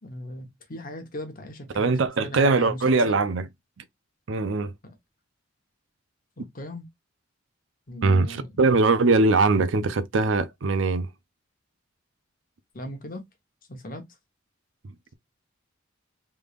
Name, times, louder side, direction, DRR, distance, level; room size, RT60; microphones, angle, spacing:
voice 1, 0.0-3.2 4.8-4.9 6.4-6.9 7.9-8.5 12.7-13.2 13.7-14.0, left 1 dB, 45° left, 1.0 m, -38 dB
voice 2, 1.7-3.5 4.3-4.7 8.0-11.1 14.8-15.1, right 3 dB, 70° right, 0.5 m, -22 dB
3.5 x 3.4 x 2.4 m
head